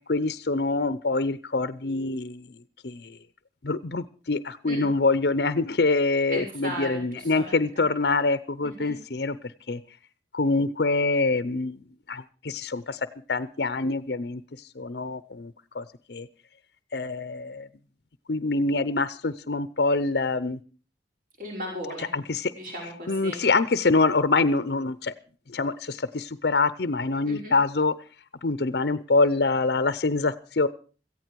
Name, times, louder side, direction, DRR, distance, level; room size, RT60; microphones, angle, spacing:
voice 1, 0.1-2.5 2.8-3.2 3.6-9.4 9.7-9.8 10.3-11.8 12.1-13.0 13.3-14.4 14.8-16.3 16.9-17.7 18.3-20.6 22.1-22.5 23.1-25.1 25.5-27.9 28.4-30.7, left 3 dB, 55° left, 15 dB, 0.7 m, -25 dB
voice 2, 6.3-7.8 8.6-8.9 21.4-22.1 22.5-23.4 27.3-27.5, equal, 45° right, 0 dB, 5.5 m, -36 dB
17.0 x 14.5 x 4.6 m, 0.37 s
head